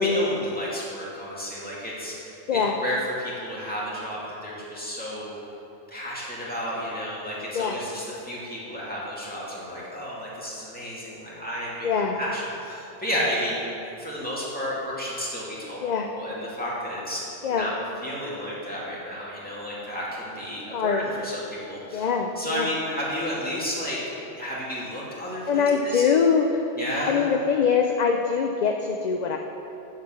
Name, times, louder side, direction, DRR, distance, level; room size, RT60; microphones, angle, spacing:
voice 1, 0.0-5.4 5.9-17.2 17.5-17.7 18.0-22.1 22.4-24.0 24.4-26.0 26.8-27.2, equal, 10° left, -7 dB, 2.4 m, -32 dB
voice 2, 11.8-12.2 15.8-16.1 17.4-17.7 20.7-21.0 21.9-22.7 25.5-26.7 27.1-29.4, left 6 dB, 50° left, 3 dB, 0.6 m, -23 dB
7.6 x 7.4 x 7.4 m, 3.0 s
omnidirectional pair, 1.1 m